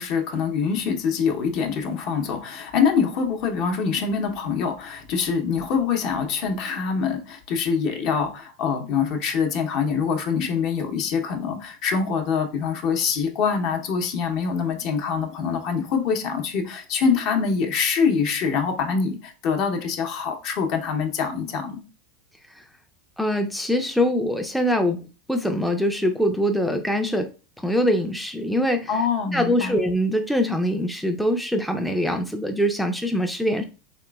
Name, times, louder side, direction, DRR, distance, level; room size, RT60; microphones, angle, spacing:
voice 1, 0.0-21.8 28.9-29.8, left 6 dB, 55° left, 0.7 m, -24 dB
voice 2, 23.2-27.3 27.6-28.9 29.3-33.6, equal, ahead, 0.4 m, -23 dB
3.2 x 2.9 x 2.2 m
hypercardioid pair, 105°, 0 cm